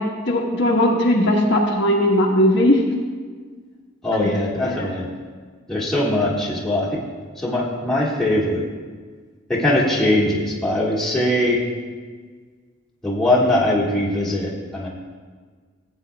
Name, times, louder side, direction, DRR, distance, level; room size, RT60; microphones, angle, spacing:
voice 1, 0.3-2.8 4.1-4.3 4.7-4.9, left 1 dB, 55° left, -1 dB, 1.2 m, -18 dB
voice 2, 4.0-5.1 5.7-6.9 7.4-8.6 9.5-11.6 13.0-14.9, left 1 dB, ahead, -6 dB, 1.7 m, -21 dB
16.5 x 8.9 x 2.3 m, 1.5 s
head